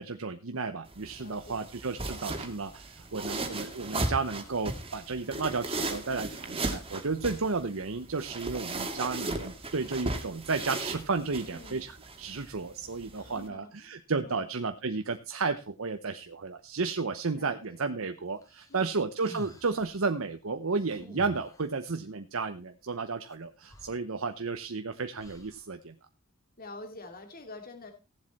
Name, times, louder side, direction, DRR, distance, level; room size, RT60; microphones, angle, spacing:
voice 1, 0.0-25.9, right 4 dB, 75° right, 8 dB, 0.9 m, -33 dB
sound 1, 0.9-13.5, right 2 dB, 25° right, 2.2 m, -37 dB
voice 2, 1.2-1.6 11.2-11.8 13.1-14.4 17.3-17.6 18.7-18.9 26.6-27.9, left 2 dB, 45° left, 5 dB, 2.6 m, -47 dB
sound 2, 18.4-20.0 20.9-21.8 23.3-23.4 23.7-24.6 25.2-25.7, left 1 dB, 15° left, 2.9 m, -50 dB
16.0 x 7.7 x 4.2 m, 0.28 s
head